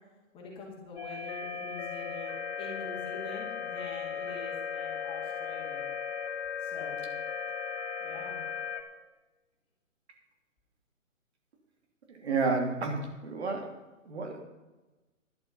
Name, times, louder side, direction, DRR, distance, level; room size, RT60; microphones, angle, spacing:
voice 1, 0.3-5.9 6.6-7.1 8.0-8.4, left 3 dB, 15° left, -2 dB, 2.6 m, -45 dB
sound 1, 1.0-8.8, left 6 dB, 50° left, 1.9 m, -36 dB
voice 2, 12.1-13.7 14.0-14.4, right 4 dB, 55° right, 3 dB, 2.9 m, -31 dB
11.5 x 11.0 x 5.5 m, 1.1 s
hypercardioid pair, 150°, 40 cm